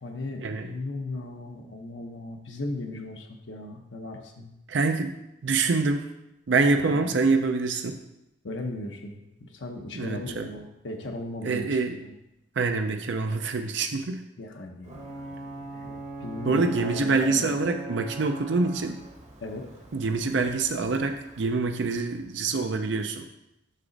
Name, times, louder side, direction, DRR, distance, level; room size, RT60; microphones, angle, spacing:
voice 1, 0.0-4.5 6.8-7.2 8.4-12.1 14.4-17.5 19.4-19.7, left 2 dB, 70° left, 2 dB, 0.8 m, -37 dB
voice 2, 4.7-5.1 5.4-6.0 6.5-7.9 9.9-10.4 11.4-12.0 12.6-14.2 16.5-19.0 19.9-23.3, right 3 dB, 65° right, 6 dB, 0.5 m, -25 dB
Ocean / Boat Water vehicle / Alarm, 14.8-22.4, right 2 dB, 35° right, 0.9 m, -41 dB
6.6 x 6.0 x 3.9 m, 0.88 s
head